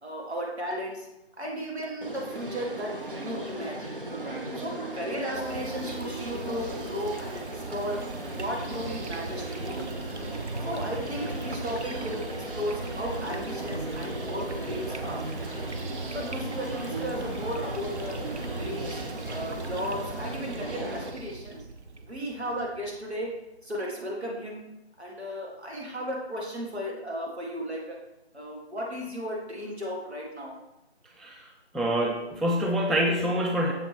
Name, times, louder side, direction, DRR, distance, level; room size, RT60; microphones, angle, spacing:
voice 1, 0.0-1.1 1.4-4.0 4.6-8.0 8.4-9.9 10.6-15.3 16.1-18.2 18.5-19.0 19.3-21.7 22.0-23.3 23.6-24.6 25.0-28.0 28.3-30.6, equal, 70° right, -1 dB, 2.1 m, -35 dB
sound 1, 2.0-21.1, right 1 dB, 50° right, 1.0 m, -37 dB
sound 2, 5.3-23.5, right 3 dB, 90° right, 0.7 m, -39 dB
sound 3, 8.2-19.1, equal, 30° right, 1.0 m, -46 dB
voice 2, 31.2-31.5 31.7-33.7, equal, ahead, 0 dB, 0.3 m, -26 dB
7.0 x 4.9 x 3.1 m, 0.90 s
figure-of-eight pair, 170°, 33 cm